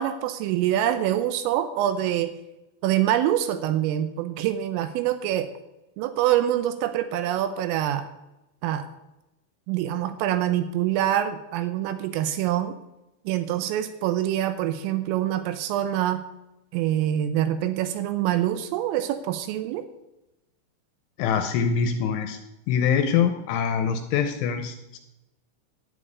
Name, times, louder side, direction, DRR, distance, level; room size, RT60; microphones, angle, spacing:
voice 1, 0.0-2.3 2.8-5.5 6.0-8.1 8.6-8.9 9.7-12.8 13.3-16.2 16.7-19.9, right 12 dB, 85° right, 10 dB, 3.4 m, -25 dB
voice 2, 21.2-22.4 22.7-25.0, left 7 dB, 80° left, 7 dB, 3.1 m, -24 dB
11.5 x 7.7 x 9.4 m, 0.95 s
omnidirectional pair, 5.8 m